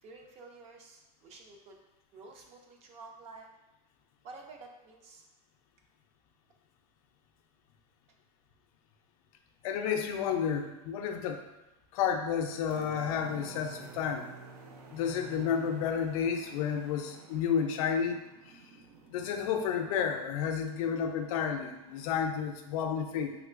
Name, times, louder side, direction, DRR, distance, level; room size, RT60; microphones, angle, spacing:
voice 1, 0.0-1.8 2.1-3.5 4.2-5.2, right 3 dB, 35° right, 2 dB, 0.5 m, -50 dB
voice 2, 9.6-11.5 11.9-14.3 14.9-18.6 19.1-23.4, left 7 dB, 65° left, 5 dB, 0.5 m, -31 dB
sound 1, 12.6-22.1, right 6 dB, 85° right, 0.5 m, -51 dB
3.4 x 2.9 x 2.4 m, 0.96 s
supercardioid pair, 145°, 19 cm